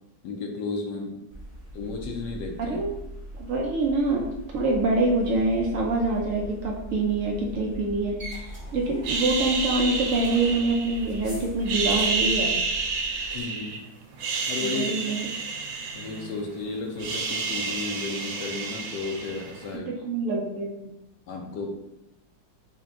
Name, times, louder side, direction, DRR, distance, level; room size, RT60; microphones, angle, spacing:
voice 1, 0.2-1.2 1.7-2.8 8.7-8.8 13.3-13.8 14.5-14.9 15.9-19.9 21.3-21.7, left 4 dB, 75° left, 1 dB, 1.2 m, -33 dB
sound 1, 1.3-13.5, right 1 dB, 30° right, 0.5 m, -40 dB
voice 2, 3.4-4.2 4.5-12.5 14.6-15.2 19.7-20.9, right 2 dB, 70° right, -1 dB, 0.7 m, -25 dB
sound 2, 9.0-11.2 11.6-13.8 14.1-16.5 16.8-19.7, right 4 dB, 90° right, 1.4 m, -29 dB
4.2 x 2.2 x 3.6 m, 0.92 s
omnidirectional pair, 2.0 m